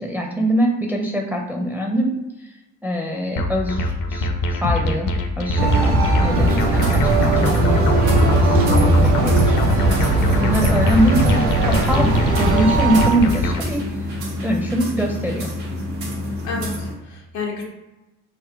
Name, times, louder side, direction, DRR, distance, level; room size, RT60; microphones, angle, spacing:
voice 1, 0.0-2.1 2.8-7.8 8.4-11.4 11.7-13.8 14.4-15.5, equal, 5° right, 0 dB, 0.5 m, -23 dB
sound 1, 3.4-13.7, left 2 dB, 45° left, 0.5 m, -23 dB
sound 2, 5.6-13.1, right 2 dB, 50° right, 0.8 m, -18 dB
sound 3, 6.3-16.9, left 1 dB, 80° right, 0.7 m, -29 dB
voice 2, 10.1-10.5 16.4-17.6, left 4 dB, 85° left, -2 dB, 0.8 m, -31 dB
2.5 x 2.1 x 3.5 m, 1.0 s
figure-of-eight pair, 45°, 48 cm